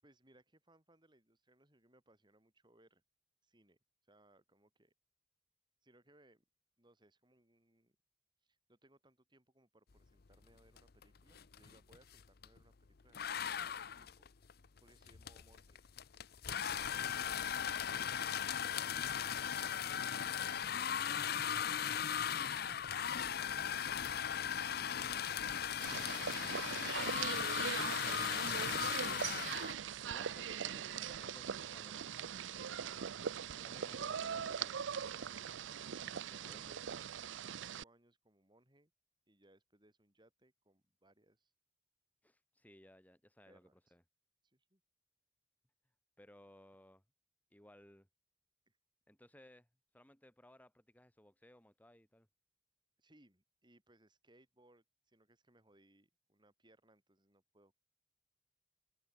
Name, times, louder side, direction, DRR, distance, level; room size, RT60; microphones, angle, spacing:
voice 1, 0.0-3.0 3.4-3.8 4.0-4.9 5.8-6.4 6.8-8.0 8.4-15.8 16.5-17.3 36.2-37.3 37.6-38.9 39.3-41.5 43.5-43.8 44.4-44.8 48.7-48.8 53.0-57.8, right 1 dB, 25° right, 6.3 m, -69 dB
sound 1, 10.8-11.0 11.3-12.6 13.1-29.7, left 8 dB, 55° left, 0.7 m, -38 dB
sound 2, 25.8-37.8, right 8 dB, 85° right, 0.5 m, -41 dB
voice 2, 27.6-33.0 33.5-35.0 36.4-36.9 42.2-44.0 46.2-47.0 47.5-48.1 49.1-49.7 49.9-52.3, left 1 dB, 10° left, 2.4 m, -62 dB
head